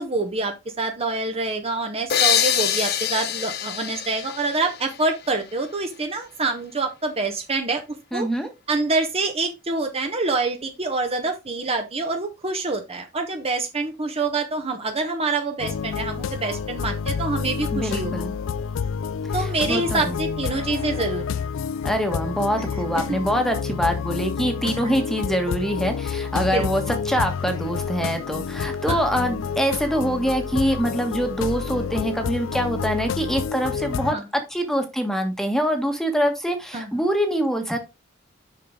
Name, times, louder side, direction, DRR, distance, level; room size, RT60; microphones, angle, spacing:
voice 1, 0.0-7.8 8.1-8.3 8.7-18.1 19.3-21.5 23.0-23.2 26.5-26.7 28.9-29.0 34.1-34.2 36.7-37.0, right 3 dB, 30° right, 5 dB, 1.0 m, -26 dB
sound 1, 2.1-5.7, left 9 dB, 55° left, 0.8 m, -25 dB
voice 2, 8.1-8.5 17.7-18.3 19.4-20.2 21.8-34.1 34.5-37.8, equal, ahead, 5 dB, 1.3 m, -24 dB
sound 2, 15.6-34.1, left 6 dB, 85° left, 0.3 m, -29 dB
6.4 x 5.8 x 3.7 m, 0.24 s
head